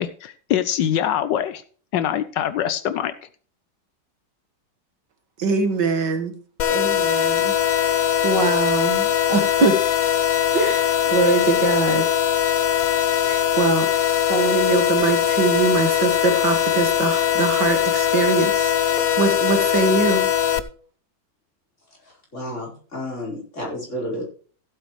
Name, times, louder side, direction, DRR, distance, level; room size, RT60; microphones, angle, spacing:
voice 1, 0.0-1.6 1.9-3.1, left 10 dB, 80° left, 13 dB, 1.3 m, -23 dB
voice 2, 5.4-6.3 6.7-7.6 7.8-7.9 8.2-9.7 10.5-12.1 13.2-13.9 14.3-20.3, right 4 dB, 70° right, 7 dB, 2.1 m, -22 dB
sound 1, 6.6-20.6, left 9 dB, 60° left, 1.1 m, -21 dB
voice 3, 21.9-24.2, equal, 40° left, -2 dB, 4.8 m, -32 dB
15.5 x 8.1 x 3.1 m, 0.44 s
omnidirectional pair, 2.0 m